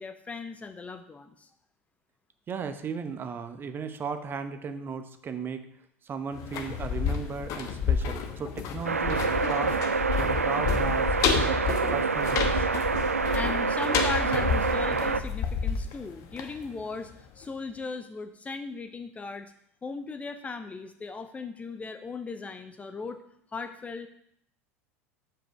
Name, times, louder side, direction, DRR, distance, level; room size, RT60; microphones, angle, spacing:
voice 1, 0.0-1.5 13.3-17.1 17.4-19.5 19.8-23.2 23.5-24.1, left 4 dB, 20° left, 8 dB, 0.6 m, -37 dB
voice 2, 2.5-5.6 6.0-9.8 10.2-12.7, right 5 dB, 30° right, 9 dB, 0.9 m, -36 dB
sound 1, 6.3-17.1 17.4-17.5, left 6 dB, 45° left, 1.1 m, -30 dB
sound 2, 8.8-15.2, right 4 dB, 85° right, 0.4 m, -27 dB
7.5 x 5.7 x 5.7 m, 0.70 s
figure-of-eight pair, 75°, 8 cm